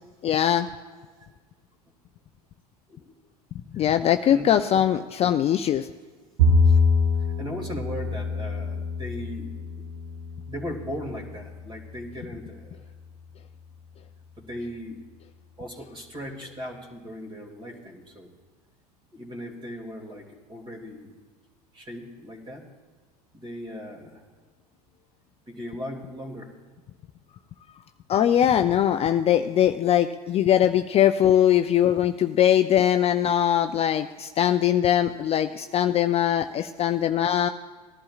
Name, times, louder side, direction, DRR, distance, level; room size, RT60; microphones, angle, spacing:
voice 1, 0.2-0.7 3.7-5.9 28.1-37.5, left 10 dB, 30° left, 8 dB, 0.4 m, -21 dB
Bowed string instrument, 6.4-12.7, left 2 dB, 60° right, 1.8 m, -25 dB
voice 2, 7.4-9.5 10.5-12.9 14.4-15.0 15.6-18.3 19.1-21.1 21.7-22.7 23.3-24.2 25.5-26.6 29.5-29.6 35.4-35.7 36.8-37.0, equal, 25° right, 0 dB, 2.4 m, -38 dB
18.5 x 11.5 x 2.4 m, 1.5 s
hypercardioid pair, 95°, 20 cm